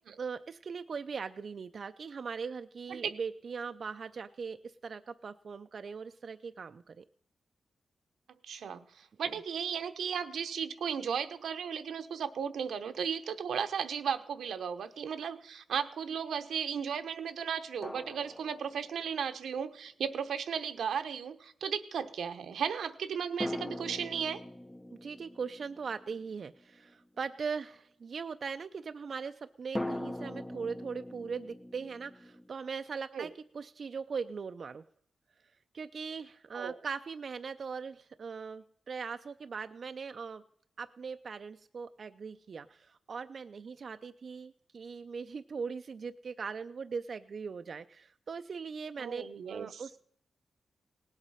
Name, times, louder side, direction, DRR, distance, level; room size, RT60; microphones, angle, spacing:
voice 1, 0.2-7.0 25.0-34.8 35.7-40.4 40.8-50.0, right 5 dB, 55° right, 8 dB, 0.4 m, -40 dB
voice 2, 8.4-24.4 33.1-33.3 36.5-36.8 49.0-49.8, right 7 dB, 90° right, 8 dB, 0.9 m, -35 dB
sound 1, 14.2-14.3 17.8-19.3 23.4-27.0 29.8-32.5, left 1 dB, 10° left, 0.5 m, -42 dB
18.5 x 8.1 x 5.6 m, 0.68 s
wide cardioid pair, 105°, 0 cm